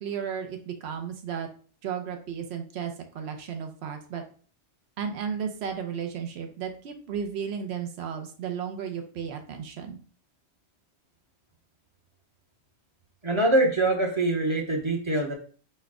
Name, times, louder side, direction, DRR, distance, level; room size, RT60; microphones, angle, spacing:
voice 1, 0.0-1.5 1.8-4.2 5.0-10.0, right 7 dB, 70° right, 4 dB, 1.0 m, -34 dB
voice 2, 13.2-15.3, right 2 dB, 30° right, 0 dB, 0.8 m, -24 dB
4.4 x 2.2 x 4.7 m, 0.41 s
omnidirectional pair, 1.2 m